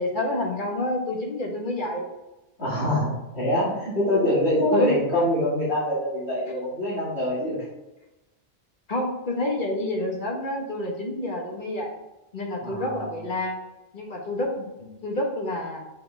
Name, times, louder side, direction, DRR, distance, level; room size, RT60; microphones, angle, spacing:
voice 1, 0.0-2.0 4.7-5.0 6.5-6.6 8.9-11.9 12.3-13.6 13.9-15.8, left 1 dB, 45° left, 0 dB, 1.4 m, -28 dB
voice 2, 2.6-7.7 12.6-13.0, left 1 dB, 70° left, -9 dB, 2.5 m, -24 dB
6.4 x 4.6 x 3.3 m, 0.99 s
omnidirectional pair, 1.1 m